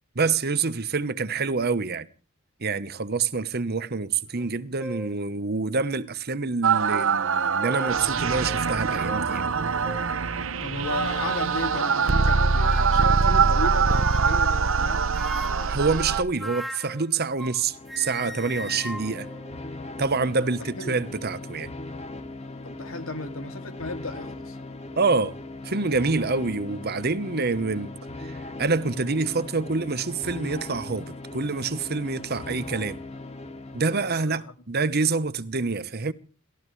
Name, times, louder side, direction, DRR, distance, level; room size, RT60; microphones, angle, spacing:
voice 1, 0.1-2.1 2.6-9.5 15.7-19.3 20.0-21.7 25.0-25.3 25.6-27.9 28.2-33.0 33.7-36.1, right 4 dB, 50° right, 1.1 m, -27 dB
sound 1, 4.4-4.5 4.8-5.2 5.9-6.0 7.3-8.0 8.5-8.6 9.1-9.2 9.8-10.1 10.8-11.5 12.5-13.0 13.9-14.5 15.1-17.6 17.9-20.2, right 1 dB, ahead, 1.0 m, -38 dB
sound 2, 6.6-16.2, right 5 dB, 70° right, 0.9 m, -23 dB
voice 2, 10.6-15.1 20.4-21.0 22.6-24.6 33.9-34.5, left 2 dB, 85° left, 2.7 m, -35 dB
sound 3, 17.5-34.3, left 2 dB, 30° left, 2.4 m, -39 dB
29.5 x 14.5 x 3.3 m
head